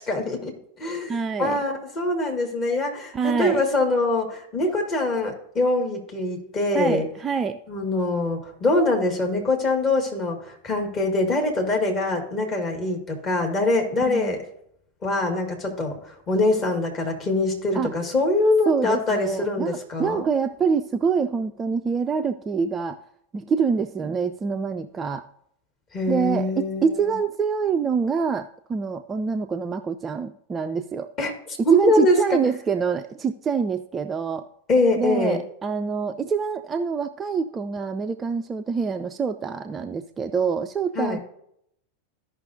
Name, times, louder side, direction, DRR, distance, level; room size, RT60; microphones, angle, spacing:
voice 1, 0.0-7.1 7.7-14.5 15.0-20.3 25.9-27.1 31.2-31.3 31.7-32.4 34.7-35.4 41.0-41.2, left 2 dB, 30° left, 1 dB, 1.9 m, -24 dB
voice 2, 1.1-1.6 3.1-3.6 6.7-7.6 14.1-14.3 17.7-17.9 18.7-23.0 23.3-25.2 26.1-31.1 31.7-34.5 35.0-41.2, right 6 dB, 20° right, 7 dB, 0.3 m, -25 dB
14.0 x 5.6 x 2.7 m, 0.73 s
figure-of-eight pair, 90°, 0 cm